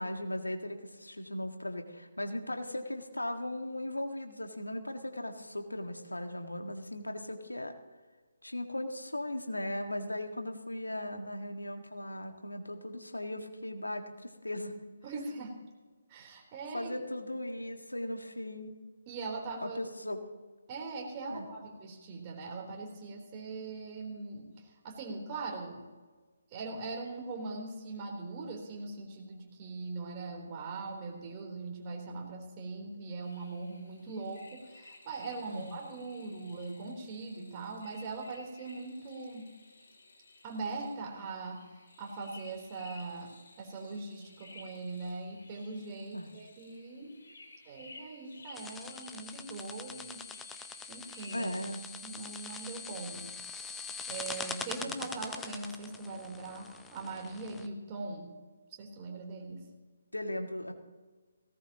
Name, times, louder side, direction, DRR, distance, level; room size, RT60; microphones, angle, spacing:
voice 1, 0.0-7.7 8.4-14.7 16.7-18.8 19.6-20.2 21.3-21.4 35.5-35.8 46.1-46.3 51.3-51.8 54.8-55.0 60.1-60.7, left 1 dB, 90° left, 5 dB, 1.7 m, -38 dB
voice 2, 15.0-15.6 16.1-17.1 19.1-19.8 20.7-25.8 26.5-39.5 40.4-41.6 42.0-43.3 43.6-47.2 47.6-50.2 50.9-51.5 52.0-53.2 53.6-53.8 54.1-58.3 58.8-59.6, right 3 dB, 25° right, 0 dB, 3.5 m, -41 dB
sound 1, 33.2-53.0, left 3 dB, 60° left, 3.2 m, -56 dB
Soundwalk with an induction microphone, 48.5-57.7, left 5 dB, 10° left, 0.7 m, -43 dB
18.0 x 17.5 x 2.9 m, 1.4 s
figure-of-eight pair, 145°, 0 cm